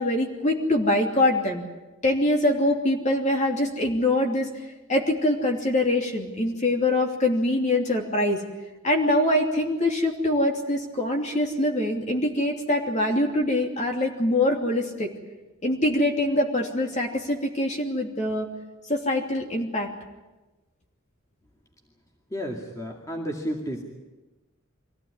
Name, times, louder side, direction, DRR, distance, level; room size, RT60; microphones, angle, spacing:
voice 1, 0.0-1.6 2.0-4.5 4.9-8.4 8.8-15.1 15.6-18.5 18.9-19.9, left 1 dB, 35° left, 2 dB, 2.9 m, -24 dB
voice 2, 22.3-23.8, equal, 15° left, 0 dB, 2.3 m, -32 dB
24.0 x 16.5 x 9.7 m, 1.1 s
head